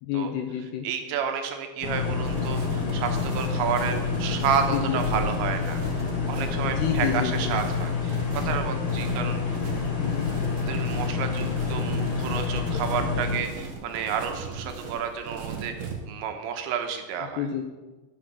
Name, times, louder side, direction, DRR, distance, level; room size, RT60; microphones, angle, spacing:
voice 1, 0.0-0.9 4.7-5.0 6.6-7.5 10.0-10.3 17.4-17.6, left 8 dB, 80° left, 5 dB, 2.5 m, -29 dB
voice 2, 0.8-9.6 10.6-17.5, right 7 dB, 85° right, 5 dB, 3.4 m, -31 dB
sound 1, 1.8-13.4, left 5 dB, 50° left, 2.5 m, -28 dB
sound 2, 2.2-15.9, right 5 dB, 60° right, 2.2 m, -38 dB
10.0 x 7.8 x 6.0 m, 1.2 s
omnidirectional pair, 5.2 m